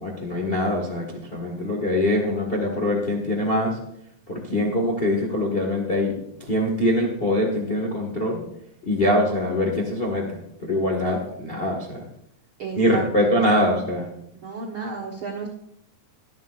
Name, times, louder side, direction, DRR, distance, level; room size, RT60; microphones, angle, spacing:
voice 1, 0.0-3.8 4.3-6.1 6.4-8.4 8.8-12.0 12.8-14.1, left 1 dB, 60° left, 0 dB, 0.6 m, -23 dB
voice 2, 12.6-13.4 14.3-15.5, right 4 dB, 70° right, 0 dB, 1.2 m, -33 dB
23.0 x 9.0 x 2.5 m, 0.76 s
omnidirectional pair, 4.2 m